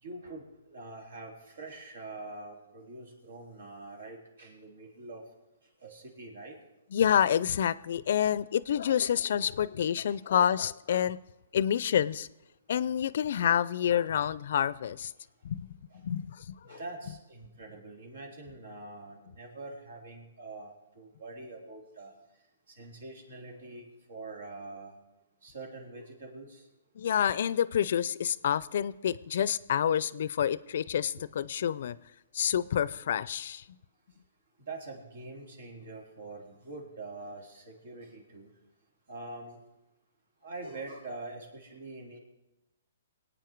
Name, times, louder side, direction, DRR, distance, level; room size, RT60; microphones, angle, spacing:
voice 1, 0.0-5.2 5.8-6.6 9.9-10.2 15.9-16.0 16.6-22.1 22.8-25.0 25.4-26.6 34.7-38.5 39.1-39.6 40.4-42.2, right 2 dB, 75° right, 1 dB, 3.8 m, -44 dB
voice 2, 6.9-11.2 11.5-12.3 12.7-15.1 15.4-15.6 16.0-16.8 27.0-32.0 32.3-33.6, left 9 dB, 60° left, 19 dB, 0.5 m, -28 dB
23.0 x 8.9 x 4.6 m, 0.98 s
hypercardioid pair, 150°, 0 cm